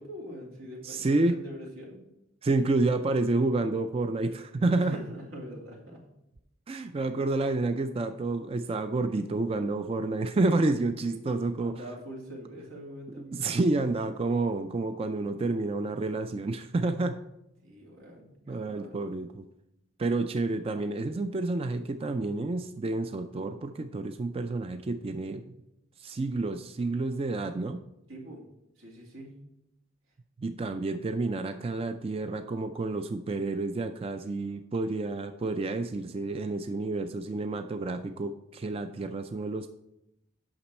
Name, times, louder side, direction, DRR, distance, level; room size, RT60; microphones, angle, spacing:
voice 1, 0.0-2.0 4.8-6.0 11.0-13.5 17.6-19.0 28.1-28.4 28.8-29.4, equal, 85° right, -1 dB, 2.2 m, -44 dB
voice 2, 0.8-1.3 2.4-5.0 6.7-11.7 13.3-17.2 18.5-19.4 20.0-25.4 26.0-27.8 30.4-39.7, right 2 dB, 30° right, 8 dB, 0.3 m, -29 dB
8.9 x 6.1 x 4.2 m, 0.84 s
head